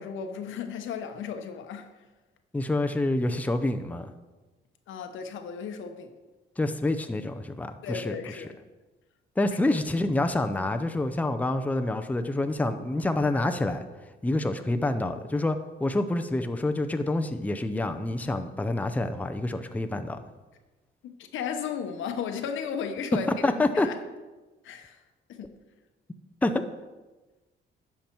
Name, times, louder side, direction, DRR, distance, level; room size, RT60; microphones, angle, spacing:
voice 1, 0.0-1.9 4.9-6.1 7.8-8.6 21.0-23.5 23.7-24.0 24.6-25.0 25.3-25.6, left 7 dB, 80° left, 1.0 m, -35 dB
voice 2, 2.5-4.1 6.6-8.4 9.4-13.8 14.2-20.3 23.4-23.9 26.4-26.6, left 2 dB, 5° left, 0.6 m, -27 dB
10.5 x 5.9 x 4.5 m
cardioid pair, 90°, 20 cm